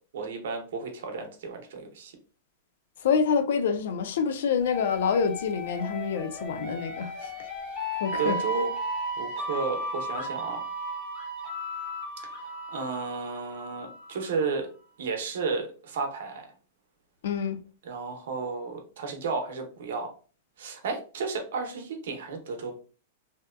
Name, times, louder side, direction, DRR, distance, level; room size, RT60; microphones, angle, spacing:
voice 1, 0.1-2.1 8.2-8.7 9.2-10.6 12.2-12.4 12.7-14.7 15.0-16.5 17.8-20.1 20.6-22.8, right 4 dB, 75° right, 0.7 m, -33 dB
voice 2, 3.0-7.3 8.0-8.4 17.2-17.6, left 6 dB, 75° left, 0.4 m, -27 dB
sound 1, 4.6-14.3, equal, 20° left, 0.8 m, -35 dB
2.7 x 2.2 x 2.2 m
supercardioid pair, 160°, 0 cm